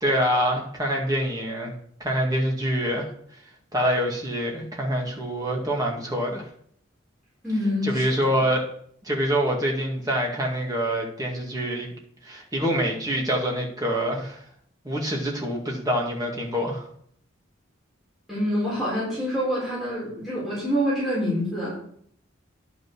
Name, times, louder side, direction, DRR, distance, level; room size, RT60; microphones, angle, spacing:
voice 1, 0.0-3.1 3.7-6.5 7.8-8.6 9.0-11.9 12.2-14.4 14.8-16.9, equal, 20° right, -1 dB, 2.0 m, -26 dB
voice 2, 7.4-8.3 18.3-21.8, equal, ahead, -9 dB, 4.2 m, -26 dB
10.5 x 5.8 x 6.2 m, 0.64 s
head